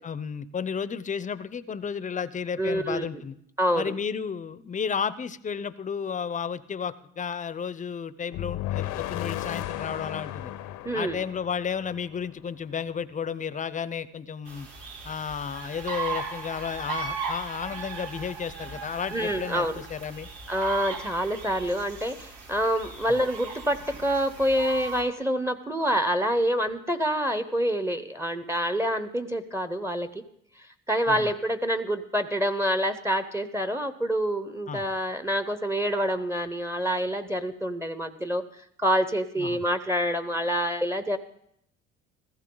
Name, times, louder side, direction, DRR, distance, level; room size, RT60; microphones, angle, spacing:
voice 1, 0.0-3.3 3.7-10.5 10.9-14.7 15.0-20.3 31.1-31.3 34.7-34.8 39.4-39.6, left 6 dB, 25° left, 16 dB, 0.7 m, -33 dB
voice 2, 2.6-3.1 3.6-3.9 10.8-11.2 19.1-19.8 20.5-30.1 30.9-38.4 38.8-41.2, equal, 10° right, 10 dB, 0.9 m, -27 dB
sound 1, 8.3-12.4, left 14 dB, 80° left, 0.9 m, -34 dB
sound 2, 14.5-25.0, right 4 dB, 90° right, 3.4 m, -38 dB
16.0 x 14.5 x 3.9 m, 0.71 s
cardioid pair, 100°, 29 cm